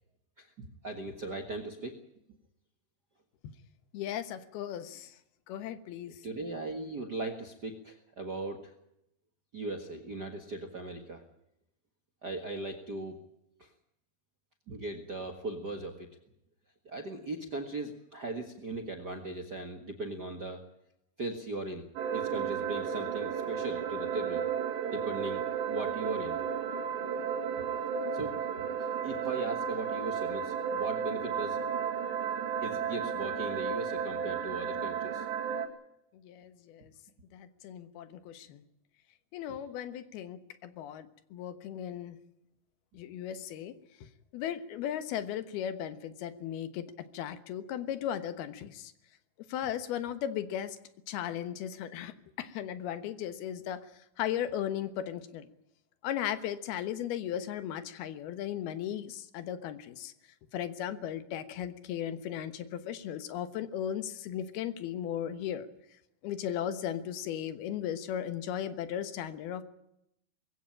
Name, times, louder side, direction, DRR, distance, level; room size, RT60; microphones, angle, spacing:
voice 1, 0.4-2.0 6.2-8.7 9.5-11.2 12.2-13.2 13.6-13.7 14.7-16.1 16.8-20.6 21.2-24.4 24.9-26.5 28.1-28.3 29.0-31.6 32.6-35.2, right 2 dB, 60° right, 6 dB, 1.0 m, -38 dB
voice 2, 3.9-5.1 5.5-6.2 36.1-36.9 37.3-38.6 39.3-42.2 42.9-43.8 44.3-48.9 49.5-50.8 51.1-53.8 54.2-55.5 56.0-60.1 60.5-65.7 66.2-69.6, left 10 dB, 70° left, 11 dB, 3.1 m, -36 dB
sound 1, 22.0-35.7, right 7 dB, 85° right, 4.4 m, -33 dB
21.5 x 16.5 x 8.9 m, 0.80 s
omnidirectional pair, 4.8 m